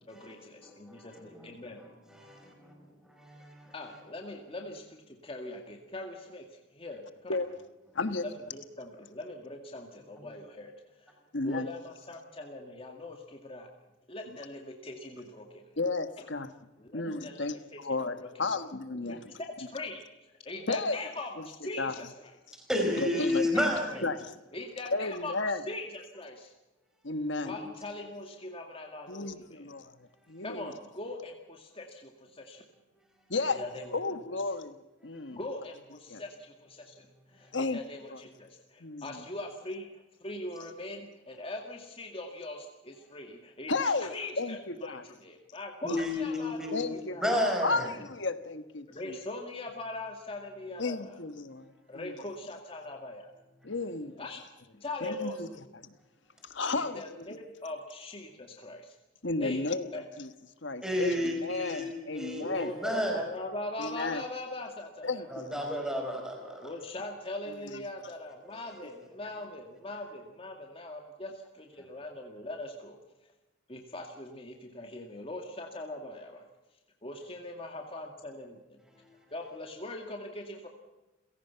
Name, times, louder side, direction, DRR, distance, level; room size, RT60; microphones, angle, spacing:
voice 1, 0.1-1.8 3.7-7.4 8.2-13.7 14.1-15.8 16.2-16.3 16.8-18.4 19.1-22.3 23.1-24.0 24.5-26.5 27.5-29.7 30.4-32.7 33.4-34.0 35.3-47.5 48.9-51.2 51.9-53.3 54.1-54.4 54.7-55.4 56.7-58.9 59.4-59.6 59.9-60.1 61.0-61.2 62.4-65.3 66.6-73.0 73.7-76.4 77.0-78.8 79.3-80.7, left 2 dB, 30° left, 2.1 m, -41 dB
voice 2, 0.6-1.1 2.1-2.5 3.2-3.7 22.7-24.0 27.4-27.6 45.8-47.9 60.8-63.1 65.3-66.7, left 1 dB, 5° right, 4.7 m, -31 dB
voice 3, 11.3-11.7 15.8-16.5 16.9-19.3 20.7-21.0 21.8-21.9 23.0-23.5 24.0-24.4 24.9-25.6 27.0-27.5 29.1-30.0 30.3-30.7 33.3-33.6 33.9-34.8 35.0-35.4 36.1-36.2 37.5-37.8 38.1-38.2 38.8-39.2 43.7-45.1 45.9-46.0 46.7-49.1 50.8-52.1 53.6-54.1 55.0-55.5 55.8-55.9 56.4-57.0 59.2-60.3 60.6-62.7 63.8-64.2 65.0-65.7, left 3 dB, 65° left, 1.5 m, -33 dB
30.0 x 17.0 x 5.8 m
head